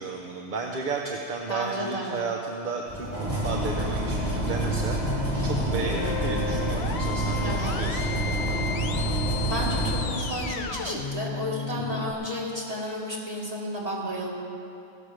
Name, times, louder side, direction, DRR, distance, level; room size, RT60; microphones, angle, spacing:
voice 1, 0.0-5.0 5.4-8.6 11.7-12.1, right 4 dB, 50° right, 1 dB, 0.7 m, -33 dB
voice 2, 1.5-2.3 7.4-7.8 9.5-14.3, equal, 35° right, -6 dB, 2.4 m, -32 dB
sound 1, 2.9-10.8, right 1 dB, 10° right, 2.6 m, -28 dB
sound 2, 5.0-12.1, left 7 dB, 65° left, 0.9 m, -35 dB
15.5 x 5.9 x 6.4 m, 2.7 s
omnidirectional pair, 1.2 m